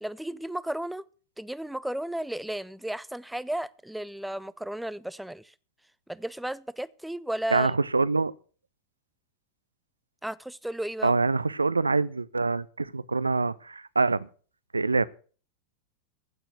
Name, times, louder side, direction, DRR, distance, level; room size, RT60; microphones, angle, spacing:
voice 1, 0.0-1.0 1.4-5.5 6.1-7.7 10.2-11.2, right 1 dB, 5° right, 0.5 m, -34 dB
voice 2, 7.5-8.3 11.0-14.3 14.7-15.1, right 3 dB, 80° right, 0.5 m, -25 dB
15.0 x 5.9 x 7.7 m
figure-of-eight pair, 90°, 0 cm